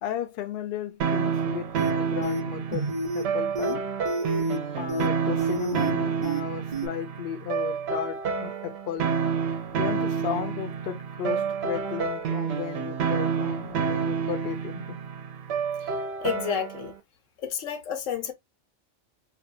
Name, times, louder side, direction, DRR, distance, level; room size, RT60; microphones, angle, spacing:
voice 1, 0.0-3.8 4.8-9.2 9.8-15.0, left 9 dB, 65° left, 0.7 m, -34 dB
sound 1, 1.0-16.9, right 6 dB, 65° right, 0.8 m, -29 dB
sound 2, 1.7-1.9 2.2-2.4 2.7-3.2 3.6-3.7 4.1-4.6 4.9-5.1 5.4-5.9 6.2-6.4 6.7-6.9, right 2 dB, 35° right, 0.6 m, -29 dB
voice 2, 16.2-16.9 17.4-18.3, left 8 dB, 85° left, 1.1 m, -30 dB
2.6 x 2.2 x 2.7 m
omnidirectional pair, 1.3 m